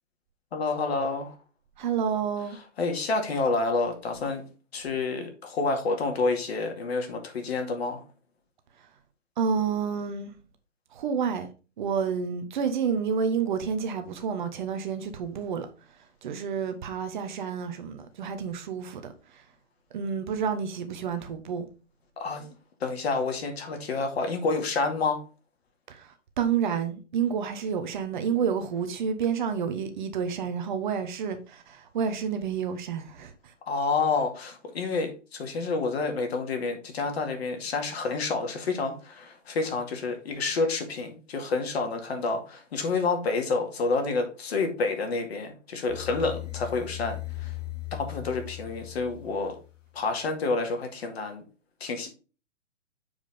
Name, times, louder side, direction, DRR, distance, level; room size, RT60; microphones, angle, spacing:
voice 1, 0.5-1.4 2.8-4.4 4.7-8.0 22.2-22.5 22.8-25.2 33.7-47.5 47.9-49.5 49.9-51.4 51.8-52.1, left 3 dB, 55° left, 2.2 m, -29 dB
voice 2, 1.8-2.6 9.4-10.3 10.9-11.5 11.8-15.7 16.2-19.4 19.9-21.6 25.9-33.5, right 6 dB, 40° right, 1.1 m, -29 dB
sound 1, 45.9-50.0, left 17 dB, 75° left, 2.1 m, -38 dB
7.4 x 4.8 x 3.5 m
hypercardioid pair, 140°, 37 cm